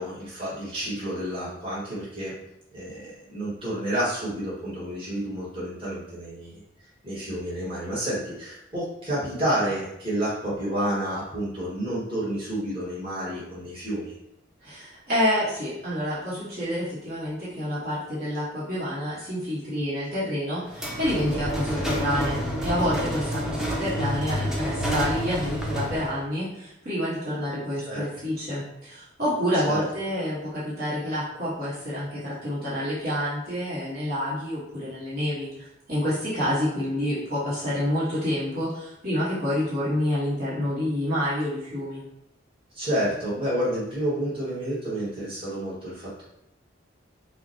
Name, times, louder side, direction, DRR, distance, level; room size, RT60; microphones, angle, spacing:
voice 1, 0.0-2.4 2.7-6.6 7.0-14.1 27.8-28.1 29.6-29.8 42.7-46.2, right 1 dB, 30° right, -8 dB, 1.5 m, -30 dB
voice 2, 14.6-35.5 35.9-42.0, equal, 50° right, -10 dB, 1.3 m, -28 dB
sound 1, 20.7-26.2, equal, 5° right, 0.5 m, -29 dB
5.9 x 2.2 x 2.7 m, 0.82 s
head